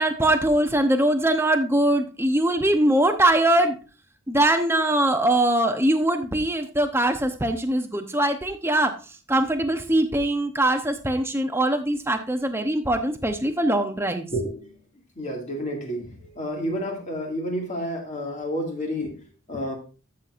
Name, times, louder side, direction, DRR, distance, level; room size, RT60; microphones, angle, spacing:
voice 1, 0.0-3.8 4.3-9.0 9.3-14.3, right 1 dB, 10° right, 7 dB, 0.8 m, -22 dB
voice 2, 14.3-14.7 15.2-19.2 19.5-19.8, equal, 35° left, 1 dB, 2.2 m, -30 dB
13.5 x 6.5 x 2.5 m, 0.34 s
head